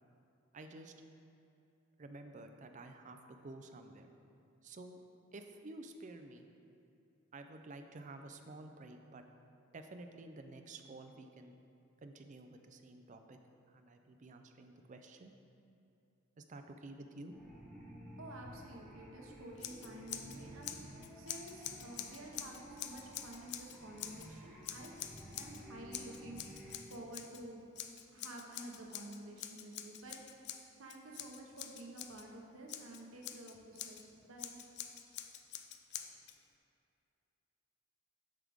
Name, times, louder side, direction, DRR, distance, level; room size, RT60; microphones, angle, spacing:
voice 1, 0.5-0.9 2.0-4.1 4.6-5.0 5.3-6.5 7.3-9.2 9.7-11.6 12.0-13.4 13.7-15.3 16.4-17.4, right 2 dB, 40° right, 6 dB, 0.4 m, -51 dB
sound 1, 17.3-26.8, equal, ahead, 0.8 m, -53 dB
voice 2, 18.2-25.1 25.4-26.4 26.9-27.7 28.1-30.2 30.8-34.6, right 1 dB, 85° right, 0 dB, 1.0 m, -51 dB
Scissors, 19.6-20.4 20.6-24.3 24.6-25.6 25.9-27.4 27.8-32.2 32.7-34.0 34.4-36.4, left 10 dB, 55° left, 0.4 m, -46 dB
7.3 x 6.1 x 3.5 m, 2.7 s
head